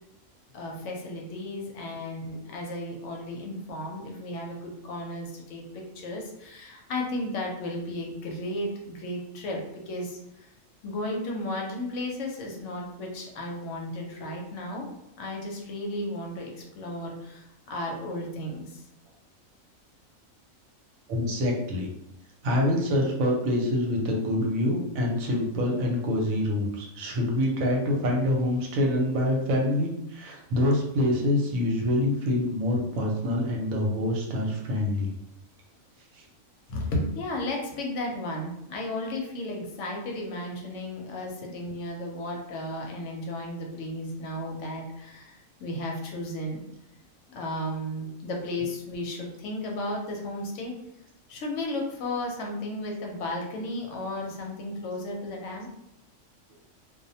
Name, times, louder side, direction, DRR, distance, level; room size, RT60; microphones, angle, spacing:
voice 1, 0.5-10.5 10.8-14.9 15.2-18.8 36.7-46.6 47.3-50.8 51.3-55.7, left 1 dB, 70° left, 0 dB, 0.9 m, -34 dB
voice 2, 21.1-21.9 22.4-35.1 36.1-36.2, left 1 dB, 85° right, -1 dB, 1.1 m, -26 dB
2.4 x 2.0 x 2.7 m, 0.86 s
omnidirectional pair, 1.4 m